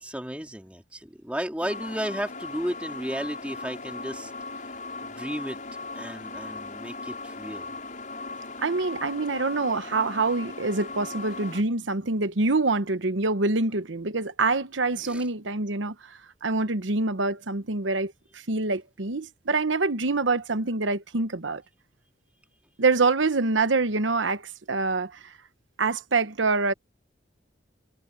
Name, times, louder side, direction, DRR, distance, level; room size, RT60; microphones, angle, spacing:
voice 1, 0.0-4.3 5.0-5.6 6.0-7.7 15.0-15.3, equal, 5° right, 2.7 m, -34 dB
sound 1, 1.6-11.6, left 3 dB, 45° left, 6.2 m, -38 dB
voice 2, 8.6-21.6 22.8-25.3 25.8-26.7, right 3 dB, 85° right, 1.1 m, -26 dB
head